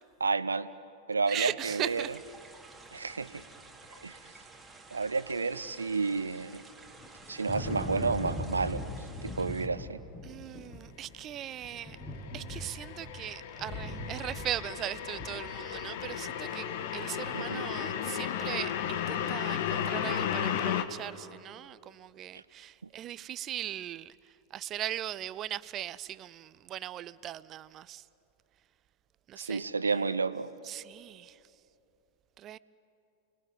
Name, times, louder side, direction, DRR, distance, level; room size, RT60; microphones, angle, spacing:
voice 1, 0.2-0.7 1.1-2.0 2.9-3.4 4.0-4.2 4.9-6.6 7.3-8.8 9.2-10.0 17.3-17.6 29.4-30.5, right 4 dB, 75° right, 0.9 m, -31 dB
voice 2, 1.3-2.2 10.2-12.0 12.3-28.1 29.3-30.2 30.6-31.4 32.4-32.6, right 12 dB, 30° right, 0.6 m, -39 dB
sound 1, 1.6-9.7, right 3 dB, 10° right, 2.8 m, -52 dB
Thunder, 6.9-16.3, left 1 dB, 25° left, 7.9 m, -40 dB
sound 2, 11.7-20.8, left 9 dB, 50° left, 1.5 m, -34 dB
29.5 x 21.5 x 9.4 m
figure-of-eight pair, 90°, 0 cm